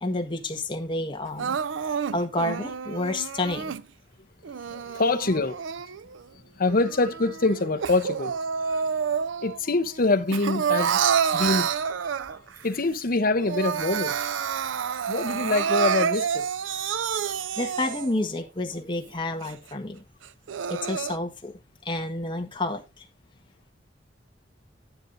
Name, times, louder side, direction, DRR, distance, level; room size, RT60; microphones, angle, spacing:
voice 1, 0.0-1.6 2.1-3.8 4.7-4.8 8.7-8.8 11.3-11.4 17.6-20.0 20.7-21.5 21.8-23.0, left 2 dB, 25° left, 1.5 m, -30 dB
Crying sobbing, 1.4-3.8 4.4-6.2 6.7-9.6 9.9-12.6 13.0-13.1 13.4-18.2 18.8-18.9 19.4-19.5 20.2-21.2, right 7 dB, 85° right, 0.5 m, -28 dB
voice 2, 4.9-5.6 6.6-8.4 9.4-11.0 11.3-12.0 12.6-14.2 15.1-16.5, left 3 dB, 50° left, 0.9 m, -25 dB
11.5 x 9.5 x 2.7 m
head